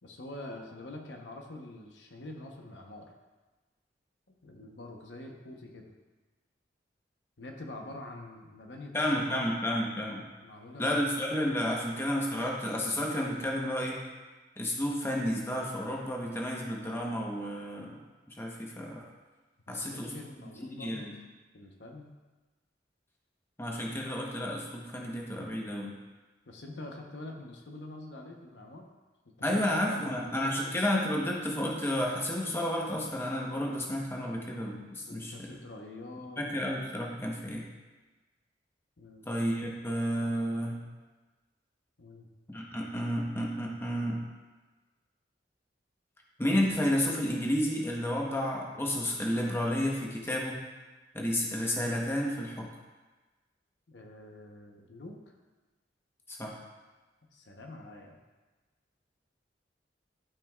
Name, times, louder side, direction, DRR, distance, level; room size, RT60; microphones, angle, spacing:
voice 1, 0.0-3.1 4.4-5.9 7.4-9.5 10.4-11.0 11.8-12.0 19.7-21.1 21.5-22.1 26.5-28.9 29.4-29.6 29.9-30.8 35.1-36.4 39.0-39.3 42.0-42.3 53.9-55.2 57.3-58.2, left 2 dB, 85° left, 1 dB, 0.9 m, -45 dB
voice 2, 8.9-10.2 10.8-14.0 14.6-18.0 18.3-19.0 19.7-20.1 20.6-21.2 23.6-25.9 29.4-35.5 36.4-37.7 39.3-40.8 42.5-44.2 46.4-50.6 51.1-52.7 56.3-56.5, equal, 15° left, -2 dB, 1.0 m, -31 dB
12.0 x 5.4 x 2.4 m, 1.2 s
head